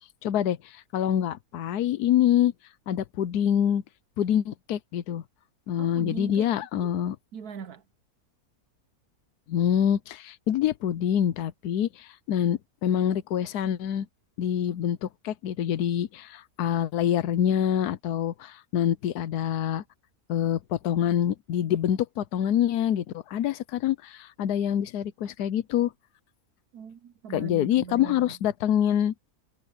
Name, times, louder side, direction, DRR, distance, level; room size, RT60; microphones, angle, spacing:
voice 1, 0.2-2.5 2.9-3.8 4.2-5.2 5.7-7.2 9.5-14.1 14.4-19.8 20.3-25.9 27.3-29.1, left 10 dB, 85° left, 1.3 m, -26 dB
voice 2, 5.8-6.5 6.8-6.9 7.3-7.8 26.7-28.3, right 7 dB, 75° right, 1.3 m, -40 dB
omnidirectional pair, 1.6 m